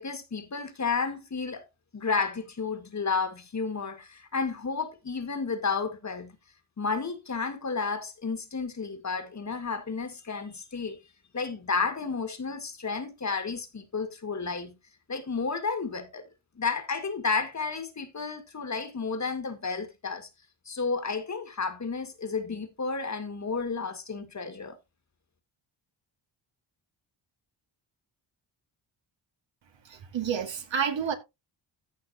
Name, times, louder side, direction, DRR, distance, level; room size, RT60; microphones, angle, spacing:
voice 1, 0.0-1.7 1.9-6.3 6.8-11.0 11.3-14.8 15.1-16.3 16.6-20.3 20.7-24.8, left 4 dB, 35° left, 1.9 m, -32 dB
voice 2, 29.9-31.1, right 7 dB, 65° right, 2.1 m, -29 dB
15.0 x 6.1 x 2.8 m
cardioid pair, 110°, 47 cm